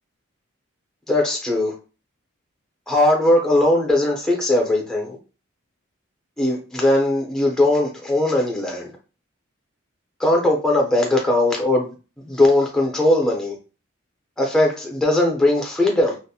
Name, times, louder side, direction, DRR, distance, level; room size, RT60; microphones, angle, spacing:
voice 1, 1.1-1.7 2.9-5.2 6.4-8.9 10.2-11.9 12.2-13.6 14.4-16.2, left 1 dB, 5° left, 0 dB, 0.5 m, -19 dB
2.3 x 2.1 x 2.7 m, 0.33 s
head